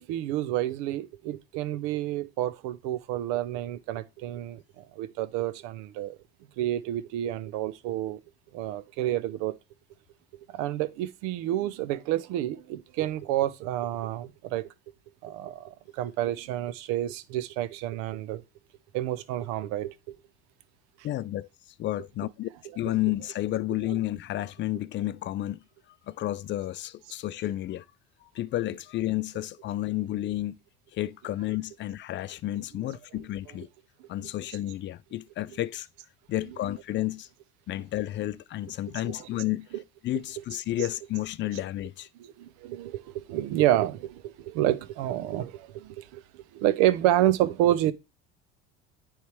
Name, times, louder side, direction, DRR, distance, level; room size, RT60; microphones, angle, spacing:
voice 1, 0.0-6.2 6.6-8.2 8.5-9.5 10.5-14.6 15.2-18.4 18.9-20.1 22.6-23.0 23.8-24.0 32.8-33.7 34.2-34.6 35.5-35.6 36.4-36.7 39.0-39.5 40.8-40.9 41.5-41.6 42.2-47.9, right 13 dB, 75° right, 0.7 m, -29 dB
voice 2, 21.0-21.5 21.8-22.5 22.8-25.6 26.1-27.8 28.2-30.6 30.9-33.7 34.1-35.9 36.3-37.3 37.7-39.7 40.0-42.1, left 15 dB, 40° left, 0.4 m, -31 dB
9.4 x 3.3 x 3.3 m
supercardioid pair, 95°, 30 cm